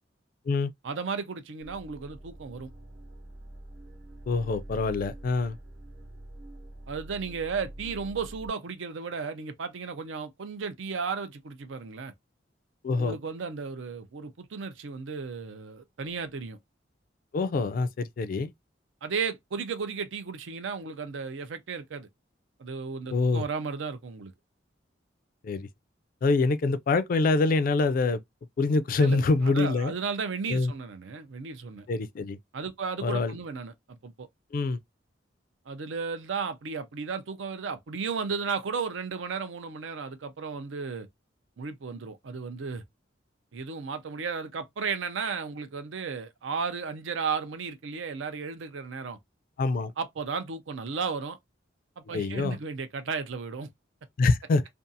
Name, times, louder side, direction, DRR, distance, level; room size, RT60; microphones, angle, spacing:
voice 1, 0.8-2.7 6.9-12.1 13.0-16.6 19.0-22.1 22.6-24.3 29.0-31.9 32.5-34.3 35.7-41.1 41.6-42.8 43.5-49.2 50.0-51.4 52.0-53.7, right 5 dB, 85° right, 0.5 m, -34 dB
sound 1, 1.6-8.5, right 1 dB, 65° right, 0.9 m, -45 dB
voice 2, 4.3-5.6 12.8-13.2 17.3-18.5 23.1-23.4 25.4-25.7 26.2-28.2 28.6-29.9 30.5-30.7 31.9-32.4 33.0-33.3 34.5-34.8 49.6-49.9 52.1-52.6 54.2-54.7, left 3 dB, 50° left, 0.3 m, -25 dB
2.5 x 2.3 x 2.6 m
head